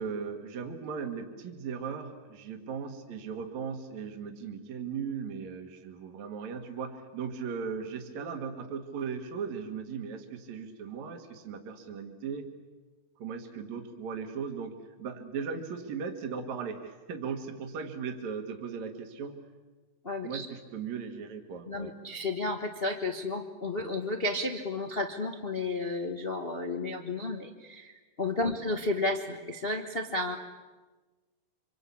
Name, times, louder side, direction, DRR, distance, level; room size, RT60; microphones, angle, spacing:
voice 1, 0.0-12.5 13.2-19.4 20.2-21.9 28.4-28.5, right 6 dB, 60° right, 5 dB, 3.0 m, -37 dB
voice 2, 20.0-20.5 21.7-30.4, left 2 dB, 75° left, 3 dB, 0.5 m, -32 dB
27.5 x 25.5 x 8.5 m, 1.3 s
omnidirectional pair, 3.7 m